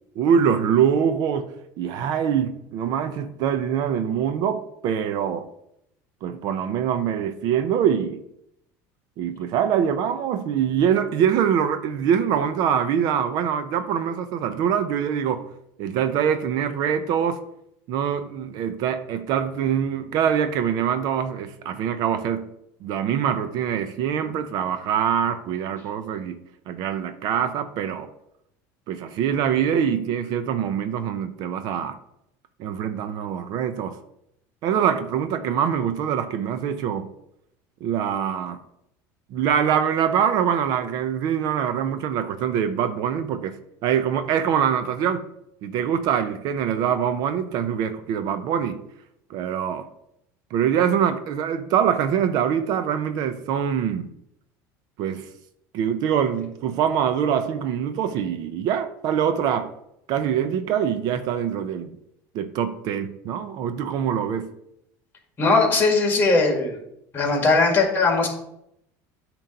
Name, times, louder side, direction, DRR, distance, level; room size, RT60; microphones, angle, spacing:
voice 1, 0.2-1.5 1.8-5.5 6.2-8.2 9.2-15.5 15.8-17.4 17.9-22.5 22.8-26.4 26.7-28.1 28.9-32.0 32.6-33.9 34.6-37.1 37.8-38.6 39.3-43.6 43.8-45.2 45.6-48.8 49.3-49.9 50.5-54.1 55.0-55.3 55.7-59.7 60.1-62.0 62.3-64.5, right 8 dB, 55° right, 0.6 m, -24 dB
voice 2, 65.4-66.8 67.1-68.3, left 3 dB, 25° left, 1.9 m, -19 dB
8.8 x 3.0 x 6.5 m
cardioid pair, 140°, 8 cm